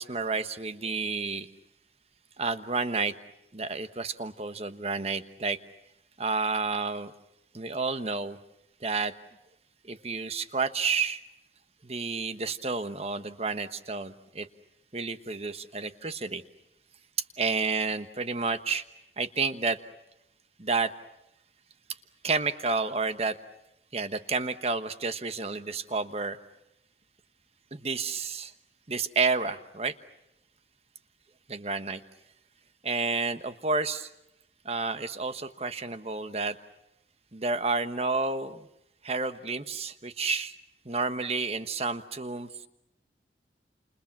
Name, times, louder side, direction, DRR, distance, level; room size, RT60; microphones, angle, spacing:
voice 1, 0.0-1.5 2.4-3.1 3.5-5.6 6.2-7.1 7.5-8.4 8.8-9.1 9.8-11.2 11.8-14.5 14.9-16.4 17.4-18.8 19.2-19.8 20.6-20.9 22.2-23.4 23.9-26.4 27.7-28.5 28.9-29.9 31.5-32.0 32.8-34.1 34.6-36.6 37.3-38.7 39.0-40.6 40.8-42.7, right 4 dB, 35° right, 10 dB, 1.2 m, -30 dB
30.0 x 28.5 x 6.1 m, 0.87 s
head